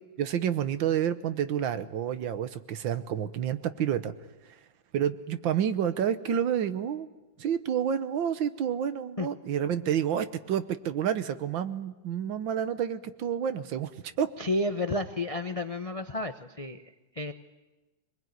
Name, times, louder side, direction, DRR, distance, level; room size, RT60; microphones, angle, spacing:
voice 1, 0.2-4.1 4.9-7.1 7.4-13.9 14.2-14.3, right 9 dB, 75° right, 12 dB, 1.7 m, -29 dB
voice 2, 14.4-17.3, left 2 dB, 65° left, 7 dB, 0.3 m, -31 dB
23.5 x 21.0 x 9.3 m, 1.1 s
omnidirectional pair, 2.2 m